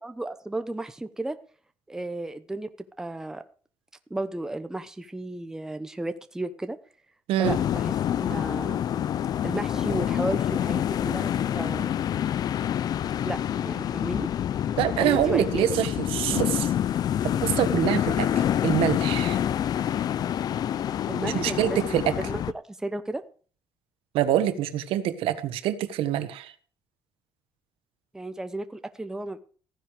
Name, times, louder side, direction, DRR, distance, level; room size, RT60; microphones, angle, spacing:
voice 1, 0.0-1.4 1.9-2.7 3.0-3.4 4.1-6.8 7.4-8.8 9.4-11.3 11.5-11.9 13.3-13.4 13.6-14.3 15.0-15.7 21.0-22.4 22.8-23.2 28.1-29.4, right 2 dB, 5° right, 9 dB, 0.9 m, -33 dB
sound 1, 7.4-22.5, left 10 dB, 45° left, 0.5 m, -27 dB
voice 2, 14.8-16.7 17.4-18.3 18.6-19.4 21.2-22.1 24.1-26.5, right 11 dB, 80° right, 10 dB, 1.6 m, -25 dB
15.0 x 10.0 x 5.0 m, 0.42 s
cardioid pair, 145°, 9 cm